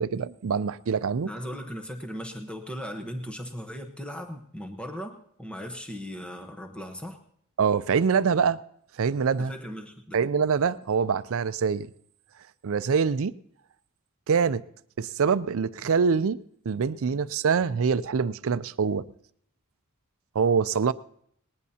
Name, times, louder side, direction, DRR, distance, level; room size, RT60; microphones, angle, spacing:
voice 1, 0.0-1.3 7.6-8.6 9.0-9.5 10.1-11.9 12.6-13.3 14.3-14.6 15.0-16.4 16.7-19.0 20.3-20.9, right 6 dB, 65° right, 0.5 m, -24 dB
voice 2, 1.2-7.2 9.4-10.2, equal, 5° left, 1.0 m, -38 dB
19.5 x 19.0 x 2.8 m
head